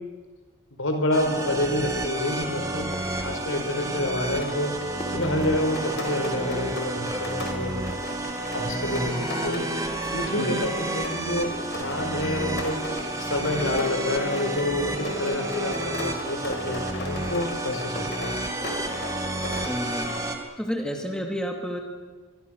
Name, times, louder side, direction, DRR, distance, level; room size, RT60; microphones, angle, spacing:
voice 1, 0.8-2.9 3.2-4.7 5.1-7.7 8.5-9.6 10.1-18.3, left 1 dB, 80° left, 5 dB, 4.8 m, -28 dB
sound 1, 0.9-1.0 1.4-1.8 2.1-2.5 2.8-3.3 3.6-3.9 4.3-6.1 6.4-7.5 7.8-8.9 9.3-9.6 10.0-10.4 10.8-11.7 12.2-12.6 12.9-14.0 14.3-16.8 17.2-18.3 18.6-19.7, left 1 dB, 30° left, 3.3 m, -43 dB
sound 2, 1.1-20.4, right 1 dB, 15° right, 2.0 m, -31 dB
Rain, 4.4-20.2, left 2 dB, 55° left, 5.0 m, -37 dB
voice 2, 19.5-20.1 20.6-21.8, equal, 5° left, 2 dB, 2.5 m, -30 dB
25.0 x 23.0 x 6.6 m, 1.3 s
head